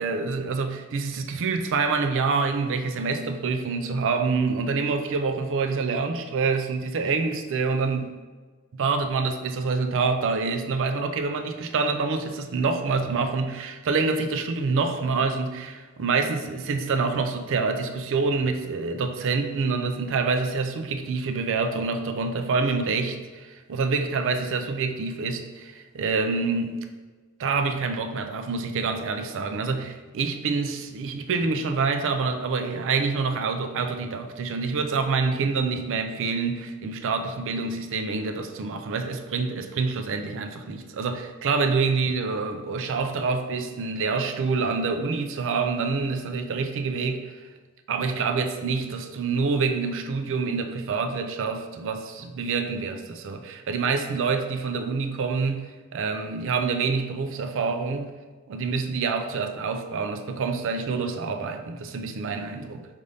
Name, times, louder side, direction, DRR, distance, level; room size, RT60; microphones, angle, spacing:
voice 1, 0.0-8.1 8.7-26.8 27.4-47.4 47.9-58.1 58.5-62.9, right 4 dB, 60° right, 6 dB, 0.4 m, -26 dB
5.3 x 2.6 x 3.3 m, 1.4 s
head